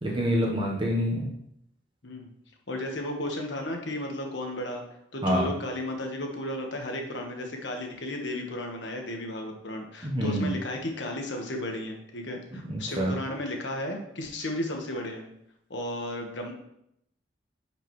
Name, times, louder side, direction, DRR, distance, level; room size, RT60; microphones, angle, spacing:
voice 1, 0.0-1.3 5.2-5.5 10.0-10.5 12.7-13.1, equal, 30° right, -2 dB, 1.0 m, -26 dB
voice 2, 2.7-4.8 5.1-15.2 15.7-16.5, left 1 dB, 85° left, 2 dB, 1.3 m, -34 dB
10.0 x 5.1 x 3.1 m, 0.77 s
head